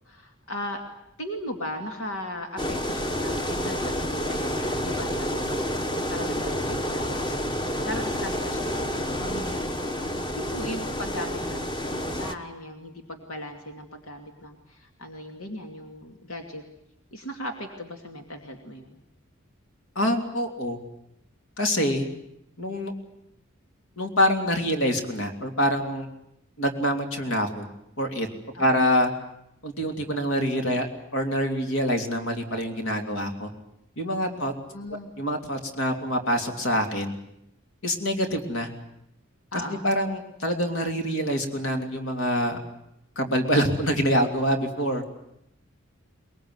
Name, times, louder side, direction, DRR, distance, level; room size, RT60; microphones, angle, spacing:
voice 1, 0.1-0.8 1.2-16.6 17.1-19.0 21.8-22.1 28.5-28.8 34.2-35.1 39.5-39.9, left 1 dB, 90° left, 4 dB, 2.5 m, -38 dB
sound 1, 2.6-12.3, equal, 20° left, 1.3 m, -29 dB
voice 2, 19.9-20.8 21.6-22.1 22.6-22.9 24.0-26.1 26.6-27.7 28.0-28.3 28.6-29.1 29.6-30.9 31.1-33.5 34.0-34.5 35.2-37.1 37.8-38.7 39.5-42.6 43.2-45.1, equal, 75° left, 5 dB, 3.1 m, -25 dB
23.0 x 21.5 x 9.6 m, 0.80 s
head